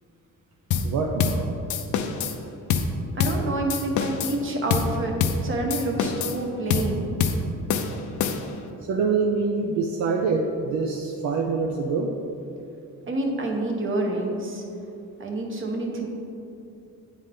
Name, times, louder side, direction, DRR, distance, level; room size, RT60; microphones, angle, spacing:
sound 1, 0.7-0.9 1.2-1.4 1.7-2.4 2.7-2.9 3.2-3.4 3.7-4.4 4.7-4.9 5.2-5.4 5.7-6.4 6.7-6.9 7.2-7.4 7.7-8.6, left 6 dB, 75° left, 0.6 m, -25 dB
voice 1, 0.8-1.5 8.9-12.1, right 4 dB, 65° right, 0 dB, 0.6 m, -25 dB
voice 2, 3.2-5.1 5.4-7.1 13.1-14.6 15.2-16.1, right 2 dB, 40° right, 1 dB, 1.2 m, -28 dB
9.2 x 4.0 x 3.8 m, 2.7 s
cardioid pair, 90°, 30 cm